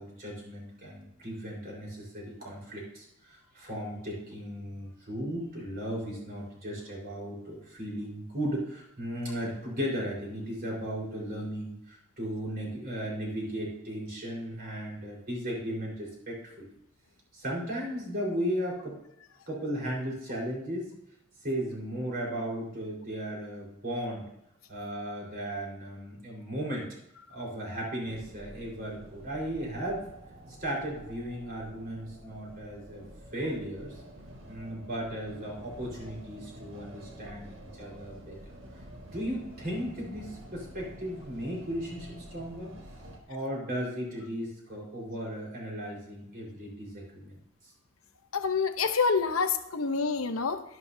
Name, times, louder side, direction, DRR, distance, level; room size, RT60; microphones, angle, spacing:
voice 1, 0.0-16.7 17.3-19.0 19.5-20.9 21.4-24.2 24.7-26.9 27.3-30.0 30.6-33.0 33.3-34.0 34.5-38.5 39.1-42.7 43.3-47.4, equal, 45° right, -3 dB, 4.4 m, -36 dB
sound 1, 28.0-43.2, equal, 65° right, 1.7 m, -48 dB
voice 2, 48.3-50.6, left 5 dB, 85° left, 8 dB, 0.8 m, -27 dB
12.0 x 11.0 x 2.7 m, 0.80 s
head